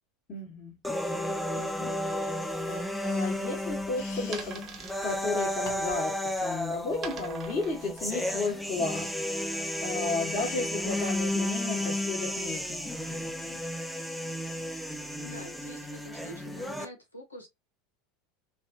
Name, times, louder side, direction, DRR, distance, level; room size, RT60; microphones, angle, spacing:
voice 1, 0.3-0.7 1.1-4.7 5.0-9.1 9.8-13.6, left 3 dB, 35° left, 1.9 m, -34 dB
sound 1, 0.8-16.9, left 1 dB, ahead, 0.6 m, -33 dB
sound 2, 2.3-6.1, left 5 dB, 55° left, 1.2 m, -49 dB
sound 3, 2.9-9.0, right 6 dB, 40° right, 1.1 m, -46 dB
voice 2, 15.2-17.5, left 1 dB, 90° left, 0.9 m, -46 dB
3.4 x 2.5 x 2.7 m
figure-of-eight pair, 80°, 0 cm